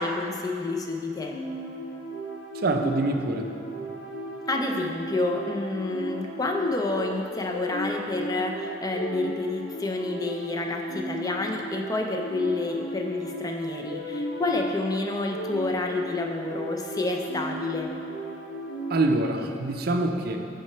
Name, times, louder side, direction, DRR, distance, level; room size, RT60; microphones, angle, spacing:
voice 1, 0.0-1.3 4.5-17.9, left 2 dB, 20° left, 2 dB, 0.5 m, -29 dB
sound 1, 1.2-19.3, right 1 dB, 80° left, 1.0 m, -36 dB
voice 2, 2.5-3.5 18.9-20.4, right 2 dB, 55° right, 4 dB, 0.5 m, -25 dB
6.0 x 4.8 x 4.4 m, 2.8 s
head